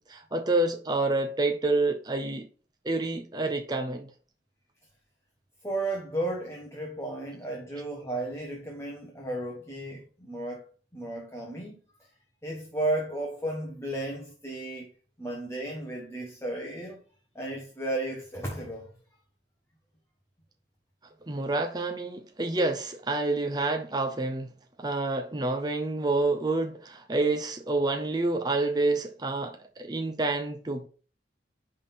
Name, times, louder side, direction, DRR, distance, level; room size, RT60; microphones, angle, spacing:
voice 1, 0.1-2.5 2.8-4.1 21.3-24.5 24.8-30.9, right 2 dB, 20° right, 0.6 m, -28 dB
voice 2, 5.6-10.7 10.9-11.8 12.4-14.9 15.2-17.0 17.3-18.9, right 1 dB, 15° left, 1.4 m, -34 dB
10.0 x 3.7 x 4.3 m
head